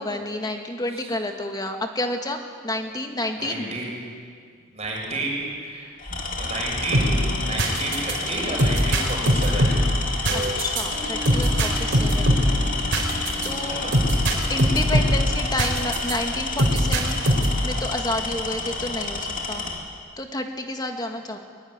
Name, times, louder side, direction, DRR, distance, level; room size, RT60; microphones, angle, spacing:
voice 1, 0.0-3.7 10.3-12.4 13.4-13.9 14.5-17.2 17.6-19.7 20.2-21.4, left 1 dB, 20° left, 4 dB, 2.0 m, -30 dB
voice 2, 3.4-4.0 4.7-5.9 6.3-7.2 7.4-9.7 13.7-14.0, right 2 dB, 30° right, -2 dB, 6.4 m, -31 dB
Tools, 4.8-5.1 6.0-19.8, left 3 dB, 40° left, 2.9 m, -30 dB
sound 1, 6.9-16.2 16.6-17.7, equal, 55° right, 4.3 m, -22 dB
22.0 x 21.5 x 9.6 m, 2.1 s
head